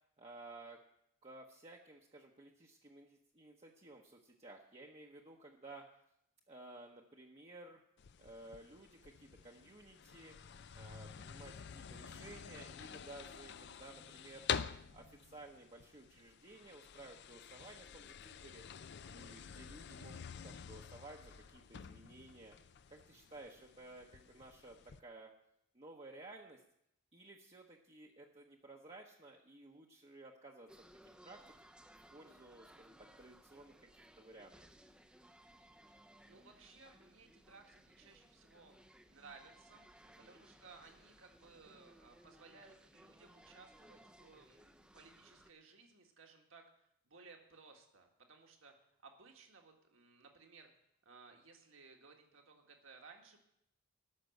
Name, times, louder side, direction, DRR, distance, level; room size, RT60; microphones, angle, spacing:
voice 1, 0.2-0.8 1.2-5.9 6.5-7.8 8.2-10.3 10.7-14.5 14.9-18.6 19.0-22.5 22.9-25.3 25.7-26.6 27.1-30.8 31.2-31.5 32.1-34.6 40.0-40.4, right 2 dB, 30° right, -1 dB, 0.9 m, -55 dB
sound 1, 8.0-25.0, left 7 dB, 50° left, 0.4 m, -48 dB
sound 2, 30.7-45.5, right 1 dB, 5° right, 0.6 m, -62 dB
voice 2, 36.3-38.8 39.1-39.9 40.2-48.7 49.0-50.7 51.0-53.4, right 4 dB, 65° right, 3 dB, 1.8 m, -60 dB
13.0 x 6.1 x 9.1 m, 0.76 s
head